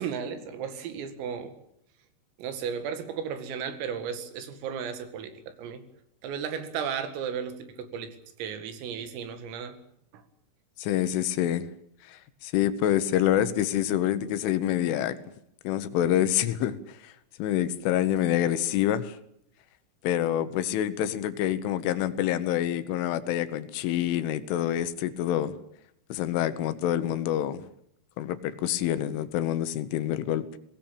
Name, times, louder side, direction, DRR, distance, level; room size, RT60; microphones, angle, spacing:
voice 1, 0.0-1.5 2.4-5.8 6.2-9.8 10.1-10.2, right 7 dB, 90° right, 4.7 m, -34 dB
voice 2, 10.8-11.7 12.1-15.2 15.7-17.1 17.4-19.2 20.0-25.5 26.1-27.6 28.2-30.5, left 11 dB, 75° left, 3.5 m, -27 dB
22.0 x 18.5 x 8.9 m
omnidirectional pair, 5.8 m